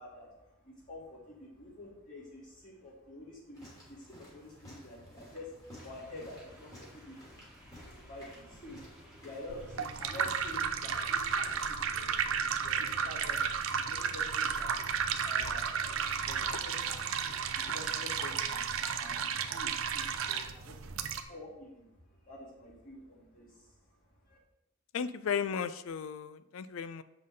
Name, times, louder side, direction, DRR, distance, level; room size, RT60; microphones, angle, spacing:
voice 1, 0.0-23.7 24.2-24.4, left 1 dB, 40° left, -6 dB, 2.9 m, -49 dB
sound 1, 3.5-11.9, left 1 dB, 15° left, 2.5 m, -54 dB
sound 2, 5.7-17.7, equal, 5° right, 1.8 m, -57 dB
sound 3, 9.5-21.2, right 7 dB, 70° right, 0.5 m, -33 dB
voice 2, 24.9-27.0, left 7 dB, 70° left, 15 dB, 0.4 m, -35 dB
7.5 x 5.7 x 3.8 m, 0.94 s
head